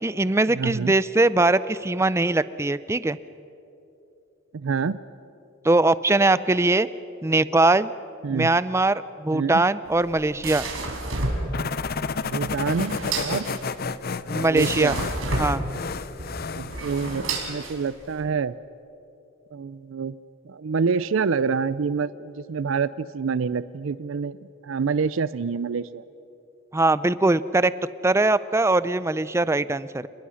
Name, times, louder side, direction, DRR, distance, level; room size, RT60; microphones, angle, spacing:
voice 1, 0.0-3.2 5.6-6.9 7.2-7.9 8.3-10.6 14.3-14.9 15.4-15.6 26.7-27.7 28.0-30.1, right 2 dB, 15° right, 16 dB, 0.4 m, -21 dB
voice 2, 0.5-0.9 4.5-5.0 8.2-8.6 9.3-9.6 12.3-13.5 14.4-15.0 16.5-18.6 19.5-20.1 20.4-24.4 24.6-26.0, right 5 dB, 70° right, 16 dB, 0.5 m, -27 dB
sound 1, 9.8-18.2, right 2 dB, 85° right, 4.3 m, -31 dB
sound 2, 11.5-17.3, left 4 dB, 50° left, 0.7 m, -31 dB
29.0 x 21.0 x 6.4 m, 2.9 s
head